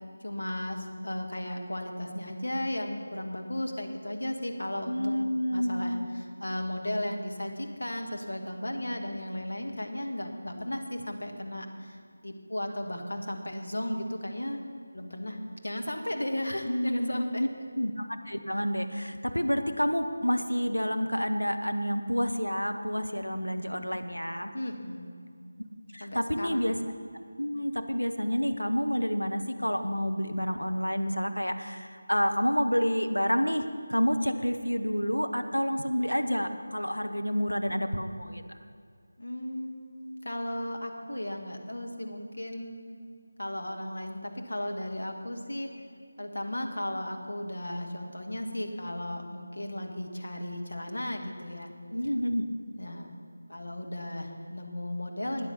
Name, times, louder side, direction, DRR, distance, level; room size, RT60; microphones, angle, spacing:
voice 1, 0.2-12.0 12.2-14.6 14.9-17.5 24.5-25.2 26.0-26.7 39.2-42.8 43.4-45.7 46.2-51.7 52.8-53.1 53.5-55.5, left 1 dB, 60° left, 3 dB, 1.7 m, -35 dB
voice 2, 4.9-6.0 16.7-17.5 17.7-24.5 25.9-26.8 27.4-33.6 33.9-38.4 51.9-52.5, equal, 85° left, 6 dB, 1.1 m, -29 dB
13.0 x 9.6 x 5.8 m, 2.2 s
figure-of-eight pair, 165°, 0 cm